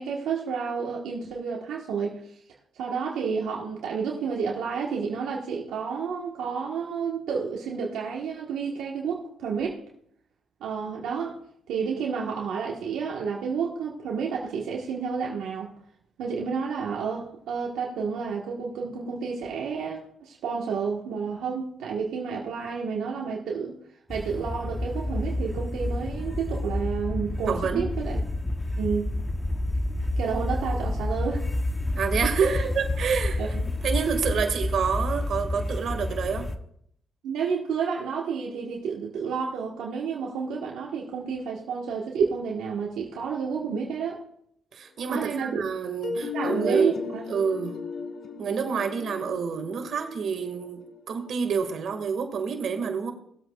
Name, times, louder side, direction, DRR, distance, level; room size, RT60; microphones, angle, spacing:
voice 1, 0.0-2.4 2.8-9.8 10.6-11.4 11.7-15.7 16.2-23.8 24.1-28.2 28.8-29.1 30.2-31.5 32.4-32.7 33.4-33.7 37.2-44.2 45.1-45.6 46.3-47.2, right 6 dB, 80° right, -2 dB, 1.4 m, -30 dB
sound 1, 24.1-36.6, left 1 dB, 20° left, 0.9 m, -29 dB
voice 2, 27.5-27.9 32.0-32.5 32.8-33.4 33.8-36.5 44.7-46.9 47.3-47.7 48.4-50.8 51.1-53.1, right 6 dB, 65° right, 5 dB, 2.0 m, -27 dB
sound 2, 46.0-51.8, left 5 dB, 55° left, 1.5 m, -36 dB
19.0 x 8.0 x 2.4 m, 0.69 s
cardioid pair, 90°, 0 cm